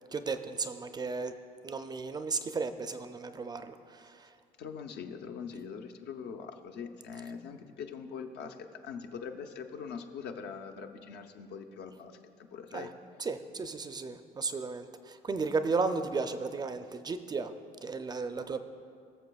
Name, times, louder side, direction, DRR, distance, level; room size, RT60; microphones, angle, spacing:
voice 1, 0.1-1.3 1.6-4.3 12.7-12.9 13.2-17.5 17.8-18.6, right 4 dB, 25° right, 9 dB, 0.4 m, -34 dB
voice 2, 4.6-12.2 12.5-12.9, left 6 dB, 75° left, 5 dB, 0.7 m, -42 dB
20.0 x 6.7 x 2.3 m, 2.3 s
cardioid pair, 110°, 17 cm